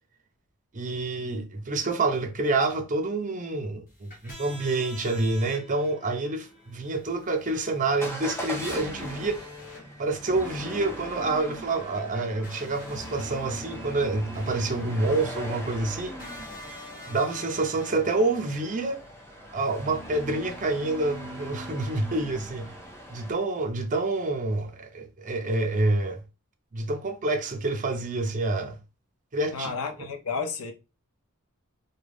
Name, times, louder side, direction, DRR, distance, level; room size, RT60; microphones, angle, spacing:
voice 1, 0.7-9.5 10.0-16.1 17.1-19.0 19.5-22.7 23.1-26.2 26.7-28.8 29.3-29.7, right 2 dB, 35° right, 0.5 m, -27 dB
sound 1, 3.9-19.1, left 1 dB, 40° left, 1.5 m, -46 dB
Motor vehicle (road) / Engine starting / Accelerating revving vroom, 8.0-23.3, equal, 10° left, 0.7 m, -40 dB
voice 2, 29.5-30.7, left 5 dB, 65° left, 0.6 m, -31 dB
3.6 x 2.2 x 3.4 m
head